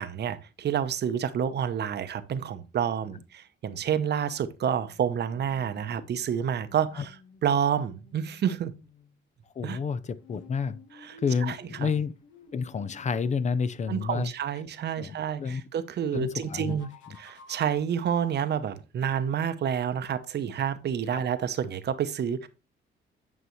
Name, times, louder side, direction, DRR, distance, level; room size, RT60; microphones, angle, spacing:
voice 1, 0.0-7.2 7.4-8.7 9.6-9.8 11.0-11.2 11.5-11.9 13.9-16.9 17.2-22.5, right 8 dB, 55° right, 0.8 m, -29 dB
sound 1, 4.9-9.2 10.2-15.0 16.2-17.8, left 4 dB, 75° left, 1.5 m, -54 dB
voice 2, 9.6-10.8 11.2-12.1 12.5-14.3 15.0-15.6 16.1-16.7 21.1-21.2, left 5 dB, 35° left, 0.6 m, -29 dB
9.3 x 5.6 x 3.1 m
cardioid pair, 90°, 20 cm